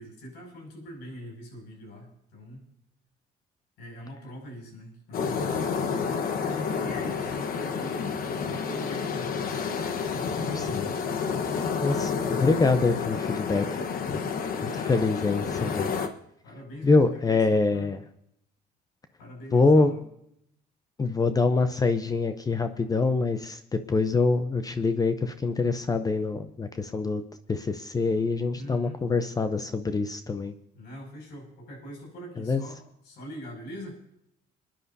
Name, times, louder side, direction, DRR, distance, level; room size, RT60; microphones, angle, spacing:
voice 1, 0.0-2.7 3.8-5.7 6.4-9.6 14.7-15.3 16.4-17.9 19.2-20.0 28.6-29.0 30.7-33.9, equal, 85° left, 1 dB, 6.1 m, -43 dB
sound 1, 5.1-16.1, left 5 dB, 60° left, 1.2 m, -30 dB
voice 2, 10.5-10.9 11.8-13.8 14.1-14.2 14.6-15.9 16.8-18.0 19.5-19.9 21.0-27.2 27.5-30.5 32.4-32.6, left 3 dB, 20° left, 9 dB, 0.7 m, -25 dB
27.5 x 10.0 x 2.7 m, 0.76 s
cardioid pair, 110°, 17 cm